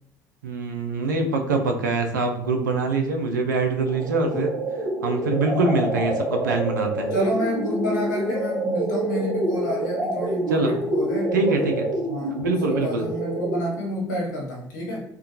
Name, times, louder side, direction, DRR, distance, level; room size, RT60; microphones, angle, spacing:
voice 1, 0.4-4.5 5.0-7.1 10.5-10.7 11.3-11.8 12.4-13.0, right 3 dB, 80° right, 4 dB, 0.4 m, -24 dB
sound 1, 3.9-13.9, right 1 dB, 50° right, 0.8 m, -27 dB
voice 2, 7.1-11.7 12.1-15.0, left 1 dB, 80° left, -3 dB, 0.8 m, -29 dB
3.6 x 2.2 x 2.8 m, 0.69 s
figure-of-eight pair, 55°, 10 cm